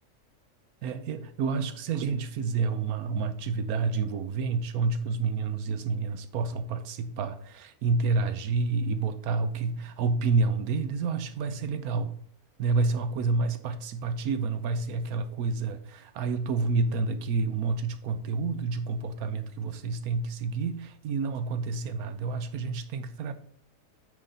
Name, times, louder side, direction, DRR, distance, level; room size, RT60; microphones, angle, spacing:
voice 1, 0.8-12.1 12.6-23.3, right 4 dB, 70° right, 1.2 m, -29 dB
9.1 x 4.0 x 4.2 m
omnidirectional pair, 1.6 m